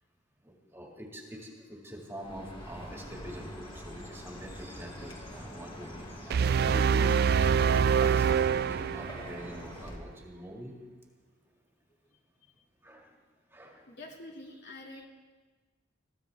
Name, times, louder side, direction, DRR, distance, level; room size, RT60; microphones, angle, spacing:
voice 1, 0.4-10.8 12.8-13.2 13.5-13.9, equal, 15° right, 0 dB, 2.0 m, -44 dB
Chirp tweet, 2.2-10.0, equal, 25° left, 2.0 m, -44 dB
sound 1, 6.3-9.5, right 7 dB, 55° right, 0.4 m, -25 dB
voice 2, 13.9-15.1, left 2 dB, 60° left, 0 dB, 2.5 m, -46 dB
22.0 x 15.0 x 3.5 m, 1.3 s
head